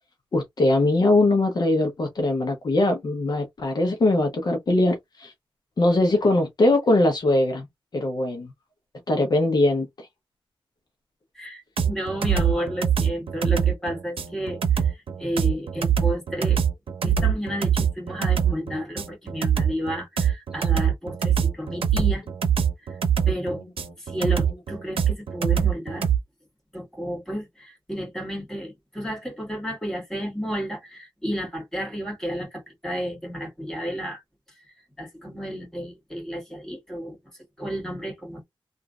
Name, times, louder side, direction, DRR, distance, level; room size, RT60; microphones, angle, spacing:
voice 1, 0.3-5.3 5.8-7.7 7.9-8.5 9.1-10.1, left 2 dB, 50° left, 0.8 m, -21 dB
voice 2, 11.4-16.6 17.0-22.2 22.9-23.0 23.3-23.6 24.0-26.1 26.7-34.2 35.0-37.2 37.6-38.4, equal, 5° left, 1.8 m, -32 dB
sound 1, 11.8-26.2, right 8 dB, 85° right, 0.7 m, -23 dB
3.0 x 2.5 x 2.3 m
wide cardioid pair, 165°, 9 cm